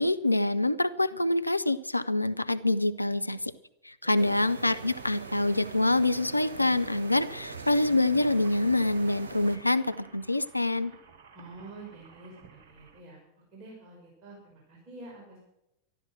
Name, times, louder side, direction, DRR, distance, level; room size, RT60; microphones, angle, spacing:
voice 1, 0.0-3.5 3.8-10.9, left 2 dB, 85° left, 13 dB, 0.6 m, -26 dB
sound 1, 4.1-9.6, right 4 dB, 70° right, 1.9 m, -42 dB
sound 2, 8.0-13.0, right 5 dB, 50° right, 2.2 m, -55 dB
voice 2, 11.3-12.4 12.7-13.2 13.5-15.4, right 2 dB, 35° right, -2 dB, 5.5 m, -47 dB
13.5 x 12.5 x 6.1 m, 0.84 s
figure-of-eight pair, 90°, 0 cm